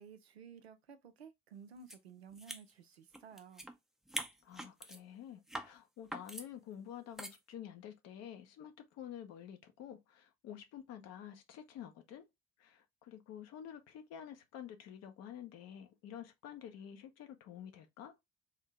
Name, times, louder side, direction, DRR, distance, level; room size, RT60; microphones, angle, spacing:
voice 1, 0.0-3.7, right 6 dB, 85° right, 0.5 m, -54 dB
sound 1, 1.9-2.0 2.3-3.7 4.1-5.0 5.5-5.7 6.1-6.5 7.2-7.4, right 1 dB, ahead, 0.5 m, -43 dB
voice 2, 4.4-12.2 12.6-18.1, left 10 dB, 55° left, 0.8 m, -49 dB
3.7 x 2.7 x 3.4 m
figure-of-eight pair, 45°, 31 cm